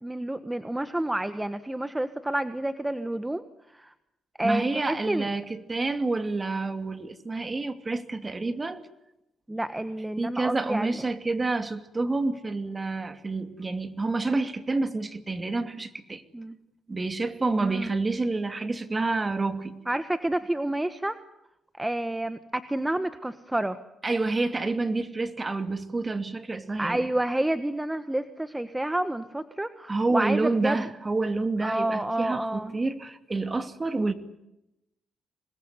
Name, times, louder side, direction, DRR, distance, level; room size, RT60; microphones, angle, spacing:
voice 1, 0.0-3.4 3.7-3.9 4.4-5.3 9.5-11.0 16.3-16.5 17.6-17.9 19.9-21.2 21.8-23.8 26.8-30.9 31.6-32.8, right 1 dB, 10° right, 11 dB, 1.3 m, -29 dB
voice 2, 4.4-8.8 10.2-16.2 16.9-19.8 24.0-27.1 29.9-34.1, right 3 dB, 25° right, 9 dB, 2.6 m, -28 dB
26.0 x 20.5 x 9.6 m, 0.88 s
cardioid pair, 85°, 0 cm